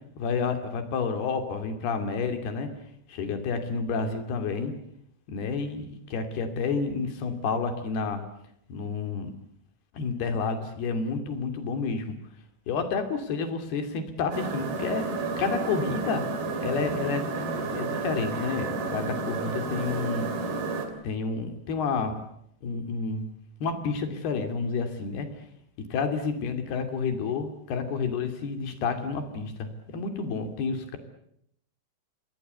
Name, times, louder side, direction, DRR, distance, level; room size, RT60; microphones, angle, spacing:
voice 1, 0.2-2.7 3.1-4.7 5.3-8.2 8.7-9.3 9.9-12.2 12.7-15.1 15.4-16.2 16.6-20.3 21.0-22.2 22.6-23.3 23.6-25.3 25.9-31.0, left 5 dB, 90° left, 7 dB, 4.6 m, -30 dB
sound 1, 14.3-20.9, right 3 dB, 90° right, 5.0 m, -31 dB
27.5 x 20.5 x 8.1 m, 0.74 s
omnidirectional pair, 4.4 m